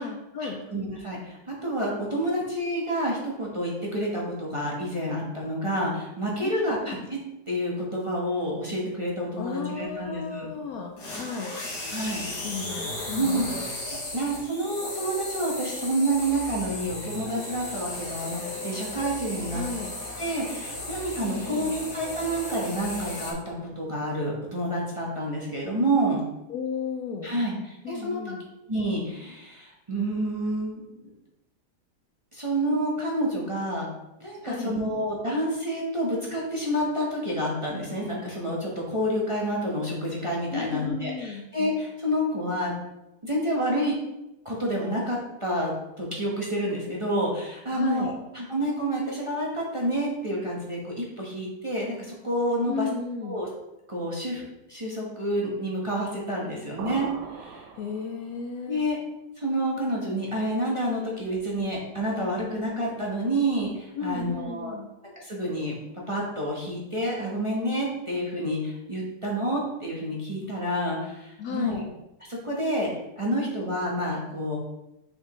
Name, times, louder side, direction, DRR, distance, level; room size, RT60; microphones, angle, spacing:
voice 1, 0.0-0.6 6.4-7.0 9.4-11.7 12.4-13.5 19.5-19.9 21.2-21.7 26.5-27.4 27.8-28.4 34.4-34.8 40.5-41.5 47.7-48.2 52.7-53.4 57.8-58.8 64.0-64.9 71.4-71.9, left 5 dB, 70° left, 3 dB, 1.0 m, -34 dB
voice 2, 0.7-7.2 7.5-10.5 11.9-12.5 13.1-13.5 14.1-19.6 20.2-26.2 27.2-28.3 28.7-30.8 32.3-33.8 34.2-42.7 43.2-44.0 44.4-45.7 46.0-52.9 53.2-53.5 53.9-54.4 54.7-57.7 58.7-59.0 59.4-64.7 65.1-65.7 66.1-71.8 72.3-72.9 73.2-74.6, right 1 dB, 20° right, -4 dB, 1.0 m, -29 dB
sound 1, 11.0-23.3, left 1 dB, 90° left, 2.1 m, -35 dB
sound 2, 56.8-58.5, right 5 dB, 80° right, 1.3 m, -41 dB
6.4 x 4.9 x 3.1 m, 0.94 s
omnidirectional pair, 1.8 m